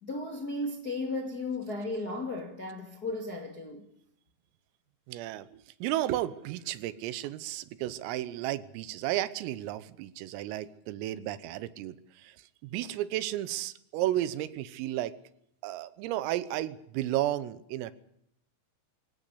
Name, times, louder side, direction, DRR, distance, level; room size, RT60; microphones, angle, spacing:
voice 1, 0.0-3.9, left 2 dB, 40° left, 1.4 m, -35 dB
voice 2, 5.1-12.4 12.6-15.2 15.6-17.9, right 14 dB, 90° right, 3.7 m, -33 dB
23.5 x 17.0 x 8.4 m
omnidirectional pair, 5.8 m